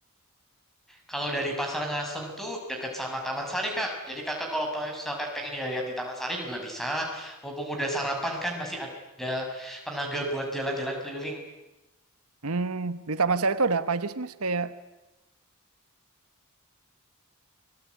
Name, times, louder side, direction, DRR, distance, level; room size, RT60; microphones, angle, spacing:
voice 1, 0.9-8.9 9.2-11.4, equal, ahead, 1 dB, 6.4 m, -32 dB
voice 2, 12.4-14.7, right 4 dB, 80° right, 12 dB, 1.2 m, -27 dB
29.5 x 21.0 x 9.6 m, 1.0 s
head